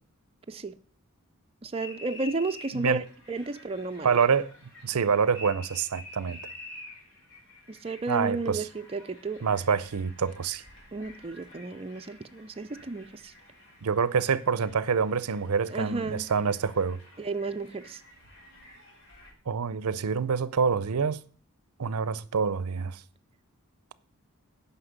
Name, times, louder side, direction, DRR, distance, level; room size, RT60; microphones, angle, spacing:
voice 1, 1.6-3.0 3.3-4.2 7.7-9.4 10.9-13.3 15.7-16.3 17.2-18.0, right 3 dB, 25° right, 0.5 m, -33 dB
sound 1, 1.8-19.3, left 2 dB, 55° left, 3.8 m, -50 dB
voice 2, 4.0-4.5 4.8-6.4 8.1-8.7 9.4-10.6 13.8-17.0 19.5-21.2 21.8-23.0, right 6 dB, 80° right, 0.6 m, -26 dB
9.7 x 5.8 x 7.9 m
head